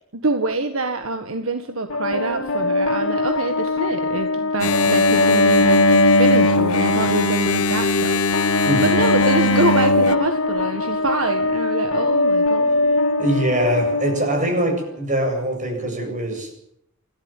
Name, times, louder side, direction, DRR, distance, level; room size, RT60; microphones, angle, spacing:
voice 1, 0.1-8.2 8.8-13.0, right 2 dB, 70° right, 7 dB, 1.7 m, -25 dB
sound 1, 1.9-14.9, left 2 dB, 65° left, 2.2 m, -21 dB
Engine, 4.6-10.1, left 2 dB, 85° left, 1.3 m, -20 dB
voice 2, 8.6-9.0 13.2-16.5, right 1 dB, 35° right, 4 dB, 7.6 m, -22 dB
28.5 x 13.0 x 7.4 m, 0.73 s
head